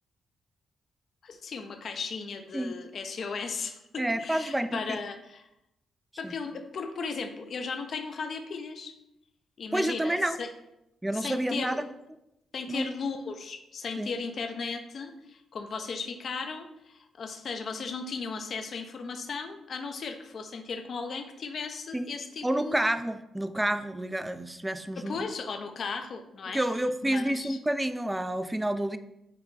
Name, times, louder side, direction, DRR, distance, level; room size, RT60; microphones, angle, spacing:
voice 1, 1.2-5.4 6.2-8.9 9.6-10.5 11.1-11.8 12.5-22.8 25.0-26.6 27.0-27.6, left 5 dB, 60° left, 6 dB, 0.5 m, -36 dB
voice 2, 4.0-5.0 6.2-6.4 9.7-10.4 11.0-11.8 12.7-12.9 14.0-14.1 21.9-22.2 22.4-25.2 26.5-29.0, right 1 dB, 10° right, 11 dB, 0.3 m, -29 dB
4.7 x 2.2 x 3.8 m, 0.85 s
supercardioid pair, 55°, 0 cm